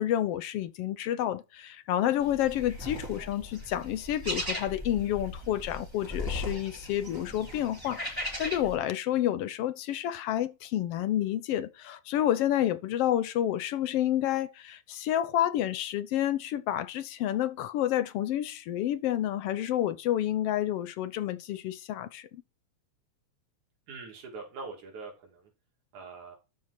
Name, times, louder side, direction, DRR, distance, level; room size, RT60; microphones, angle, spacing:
voice 1, 0.0-22.4, left 12 dB, 70° left, 1.5 m, -29 dB
sound 1, 2.2-8.7, left 1 dB, 5° right, 2.9 m, -38 dB
voice 2, 23.9-25.5 25.9-26.4, right 4 dB, 85° right, 4.1 m, -43 dB
12.5 x 4.7 x 4.3 m
omnidirectional pair, 3.3 m